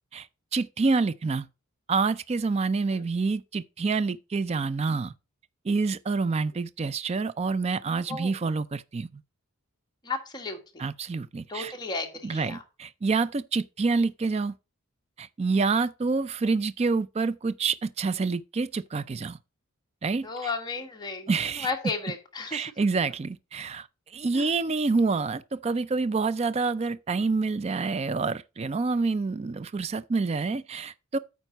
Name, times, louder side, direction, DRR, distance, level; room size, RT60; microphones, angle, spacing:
voice 1, 0.5-1.5 1.9-5.1 5.7-9.1 10.8-11.7 12.2-14.5 15.2-19.4 20.0-20.3 21.3-21.7 22.5-23.9 24.1-31.2, right 4 dB, 30° right, 0.3 m, -27 dB
voice 2, 10.0-10.8 11.5-12.6 20.2-22.7 24.3-24.5, left 4 dB, 20° left, 1.4 m, -34 dB
9.0 x 4.1 x 5.3 m
head